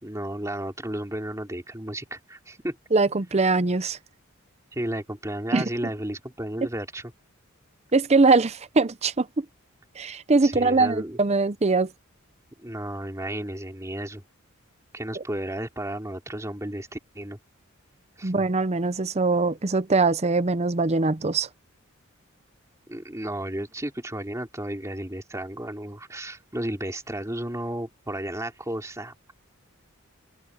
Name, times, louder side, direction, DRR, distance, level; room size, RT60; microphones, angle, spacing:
voice 1, 0.0-2.8 4.7-7.1 10.4-11.2 12.6-14.2 14.9-17.4 18.2-18.5 22.9-29.1, right 1 dB, 15° right, 3.0 m, -33 dB
voice 2, 2.9-4.0 5.5-5.7 7.9-9.5 10.0-11.9 15.2-15.3 18.2-21.5, right 3 dB, 30° right, 0.6 m, -22 dB
open air
head